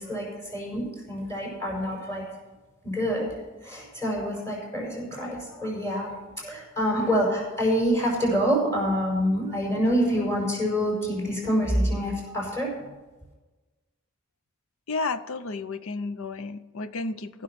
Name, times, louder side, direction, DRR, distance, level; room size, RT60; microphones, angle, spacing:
voice 1, 0.0-2.3 2.8-3.3 3.6-6.1 6.4-12.7, equal, 15° left, -3 dB, 5.1 m, -26 dB
voice 2, 14.9-17.4, left 3 dB, 70° left, 13 dB, 0.7 m, -32 dB
15.0 x 6.7 x 5.9 m, 1.2 s
head